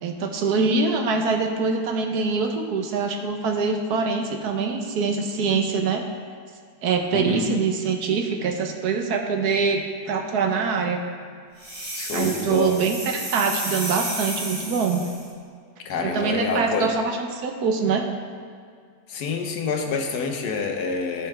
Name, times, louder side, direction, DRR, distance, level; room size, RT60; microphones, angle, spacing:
voice 1, 0.0-6.0 6.8-11.0 12.1-15.0 16.0-18.0, right 5 dB, 85° right, 4 dB, 1.4 m, -24 dB
voice 2, 7.1-7.5 11.9-12.8 15.8-16.9 19.1-21.3, left 4 dB, 90° left, 3 dB, 1.5 m, -27 dB
sound 1, 11.6-15.3, right 1 dB, 55° right, 2.4 m, -32 dB
14.0 x 5.5 x 3.3 m, 2.1 s
omnidirectional pair, 1.6 m